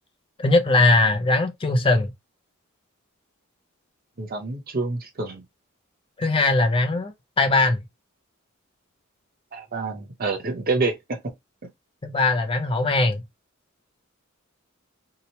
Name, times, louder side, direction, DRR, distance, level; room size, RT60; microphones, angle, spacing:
voice 1, 0.4-2.1 6.2-7.8 12.0-13.2, left 2 dB, 25° left, 0.4 m, -20 dB
voice 2, 4.2-5.4 9.5-11.2, right 3 dB, 45° right, 0.7 m, -27 dB
2.8 x 2.0 x 2.8 m
head